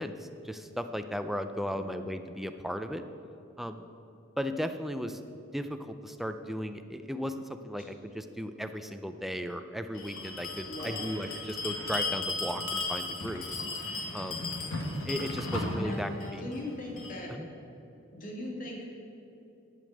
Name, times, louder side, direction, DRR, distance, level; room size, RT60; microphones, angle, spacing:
voice 1, 0.0-3.0 3.6-3.9 4.4-5.2 5.5-13.4 14.1-14.5 15.1-16.4 17.3-17.5, equal, ahead, 8 dB, 0.4 m, -36 dB
voice 2, 1.7-2.0 7.8-7.9 10.7-11.1 15.4-15.5 15.7-17.3 18.1-19.0, left 1 dB, 40° left, -1 dB, 1.9 m, -40 dB
Bell, 9.9-17.2, left 2 dB, 85° left, 1.7 m, -35 dB
10.5 x 5.2 x 7.7 m, 2.8 s
head